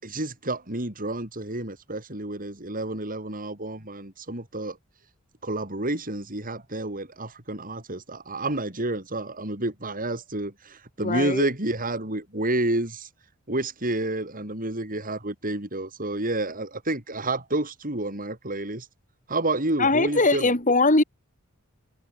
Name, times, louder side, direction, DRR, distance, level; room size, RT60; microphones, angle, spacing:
voice 1, 0.0-4.8 5.4-13.1 13.5-18.9 19.3-20.5, right 2 dB, 40° right, 6.4 m, -29 dB
voice 2, 11.0-11.5 19.8-21.0, left 2 dB, 35° left, 4.2 m, -21 dB
head